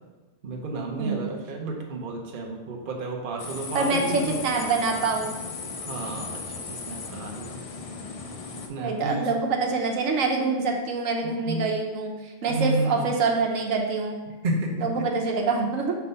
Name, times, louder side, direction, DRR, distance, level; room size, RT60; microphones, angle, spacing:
voice 1, 0.4-4.3 5.7-6.4 6.7-7.6 8.7-9.3 11.2-11.6 12.5-13.1 14.4-15.1, right 2 dB, 45° right, 0 dB, 1.0 m, -31 dB
voice 2, 1.0-1.3 3.7-5.3 8.8-14.2 14.8-16.0, right 4 dB, 85° right, 1 dB, 1.2 m, -25 dB
sound 1, 3.4-8.7, left 4 dB, 50° left, 0.4 m, -36 dB
5.8 x 3.4 x 5.4 m, 1.2 s
omnidirectional pair, 1.4 m